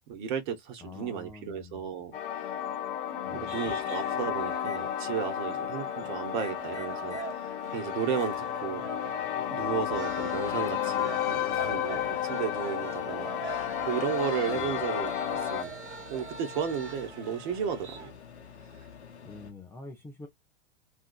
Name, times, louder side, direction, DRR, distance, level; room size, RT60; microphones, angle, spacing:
voice 1, 0.1-2.1 3.3-8.9 9.5-15.1 15.5-15.7 16.1-18.1, right 7 dB, 45° right, 1.0 m, -34 dB
voice 2, 0.8-1.8 3.3-3.5 14.5-14.7 19.2-20.3, left 3 dB, 5° left, 0.4 m, -46 dB
sound 1, 2.1-15.6, left 10 dB, 55° left, 0.7 m, -32 dB
sound 2, 3.5-18.1, right 5 dB, 80° right, 0.9 m, -44 dB
Microwave oven, 3.8-4.8 6.3-7.4 7.7-19.5, left 5 dB, 80° left, 0.8 m, -49 dB
2.9 x 2.6 x 2.3 m
figure-of-eight pair, 95°, 34 cm